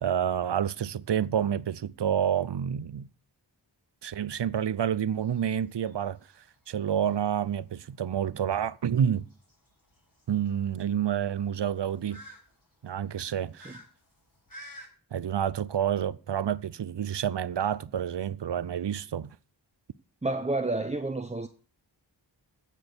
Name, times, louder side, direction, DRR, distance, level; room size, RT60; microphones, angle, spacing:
voice 1, 0.0-3.1 4.0-6.2 6.7-9.3 10.3-12.2 12.8-13.8 15.1-19.4, right 9 dB, 65° right, 0.6 m, -29 dB
sound 1, 5.1-14.9, equal, 45° left, 5.6 m, -53 dB
voice 2, 20.2-21.5, right 2 dB, 15° right, 0.8 m, -30 dB
16.0 x 6.3 x 6.9 m
wide cardioid pair, 50°, 46 cm